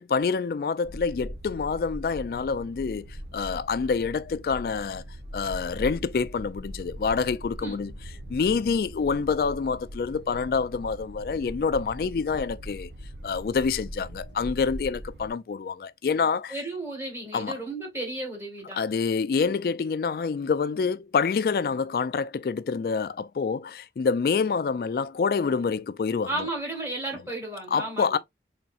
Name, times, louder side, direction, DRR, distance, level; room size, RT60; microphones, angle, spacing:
voice 1, 0.0-5.0 5.3-7.9 8.3-12.9 13.2-16.5 17.3-17.6 18.8-26.5 27.7-28.2, left 5 dB, 55° left, 0.3 m, -27 dB
sound 1, 0.8-15.3, equal, 85° right, 0.9 m, -40 dB
voice 2, 16.5-18.8 26.3-28.2, right 2 dB, 15° right, 1.6 m, -33 dB
4.1 x 3.5 x 2.3 m
head